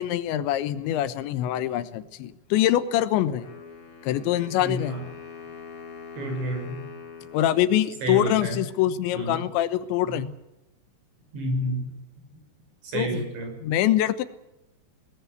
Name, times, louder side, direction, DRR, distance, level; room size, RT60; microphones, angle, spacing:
voice 1, 0.0-3.5 4.0-5.0 7.3-10.3 12.9-13.2 13.6-14.2, left 12 dB, 80° left, 13 dB, 3.4 m, -24 dB
Wind instrument woodwind instrument, 3.4-8.4, left 6 dB, 35° left, 3.3 m, -43 dB
voice 2, 4.6-5.0 6.2-6.8 8.0-8.6 9.1-9.4 10.1-10.2 11.3-11.9 12.8-13.5, right 1 dB, 80° right, 3 dB, 8.2 m, -30 dB
21.5 x 19.0 x 8.1 m, 0.96 s
omnidirectional pair, 5.2 m